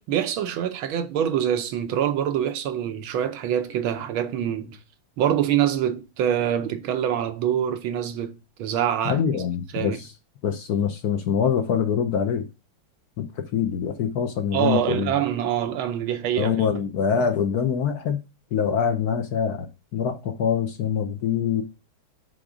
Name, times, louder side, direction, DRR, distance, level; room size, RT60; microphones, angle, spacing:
voice 1, 0.0-4.8 5.2-9.2 9.7-10.0 14.5-16.6, right 10 dB, 80° right, 1.5 m, -25 dB
voice 2, 9.0-10.1 10.4-12.5 13.2-15.1 16.4-18.2 18.5-19.7 19.9-21.6, left 7 dB, 65° left, 1.0 m, -24 dB
6.2 x 3.8 x 4.9 m
omnidirectional pair, 2.3 m